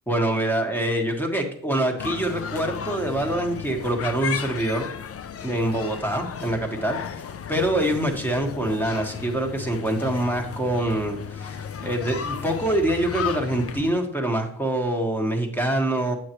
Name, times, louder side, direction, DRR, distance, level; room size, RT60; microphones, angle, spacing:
voice 1, 0.1-4.9 5.4-7.0 7.5-16.1, right 1 dB, 5° left, 2 dB, 1.5 m, -25 dB
sound 1, 2.0-13.9, left 7 dB, 45° left, 0.5 m, -34 dB
8.4 x 8.0 x 3.0 m, 0.63 s
wide cardioid pair, 105°, 32 cm